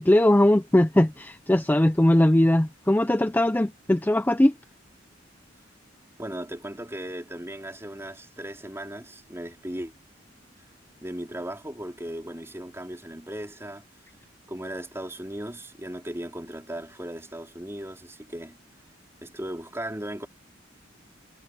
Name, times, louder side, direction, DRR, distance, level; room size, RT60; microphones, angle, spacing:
voice 1, 0.0-4.5, left 1 dB, 10° left, 0.5 m, -20 dB
voice 2, 6.2-9.9 11.0-13.8 14.5-18.6 19.2-20.3, right 1 dB, 15° right, 4.0 m, -37 dB
head